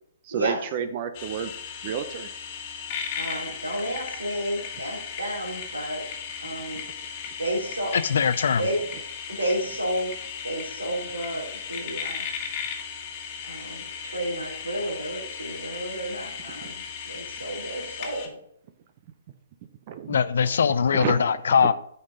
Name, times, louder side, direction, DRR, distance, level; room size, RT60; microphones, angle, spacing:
voice 1, 0.2-1.5 1.8-2.3 6.7-6.8 16.6-16.7 19.9-20.2 20.9-21.3 21.6-21.7, right 8 dB, 40° right, 0.7 m, -30 dB
sound 1, 1.1-18.3, left 7 dB, 35° left, 1.5 m, -36 dB
voice 2, 3.1-6.0 6.4-6.8 7.4-7.9 8.6-8.8 9.3-10.1 10.4-12.3 13.5-18.4 20.3-20.5 20.9-21.3, right 1 dB, 75° right, 2.9 m, -31 dB
voice 3, 7.9-8.6 20.1-21.7, left 6 dB, 60° left, 0.4 m, -21 dB
9.7 x 5.4 x 3.8 m
figure-of-eight pair, 125°, 0 cm